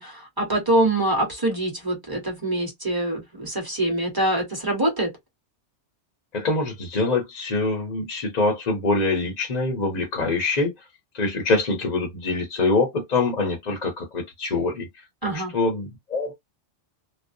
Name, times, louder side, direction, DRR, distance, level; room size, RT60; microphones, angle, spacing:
voice 1, 0.0-5.1 15.2-15.5, right 1 dB, 20° right, 1.0 m, -24 dB
voice 2, 6.3-10.7 11.1-15.0 15.3-16.3, left 3 dB, 40° left, 0.7 m, -24 dB
2.4 x 2.0 x 2.5 m
omnidirectional pair, 1.3 m